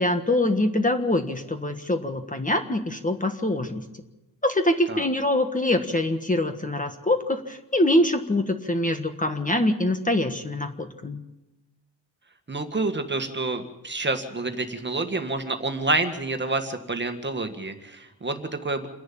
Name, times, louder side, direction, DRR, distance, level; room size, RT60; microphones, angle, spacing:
voice 1, 0.0-3.8 4.4-11.2, left 1 dB, 20° left, 6 dB, 1.5 m, -24 dB
voice 2, 12.5-18.9, right 2 dB, 25° right, 6 dB, 1.8 m, -28 dB
28.5 x 11.0 x 8.6 m, 0.99 s
wide cardioid pair, 155°, 44 cm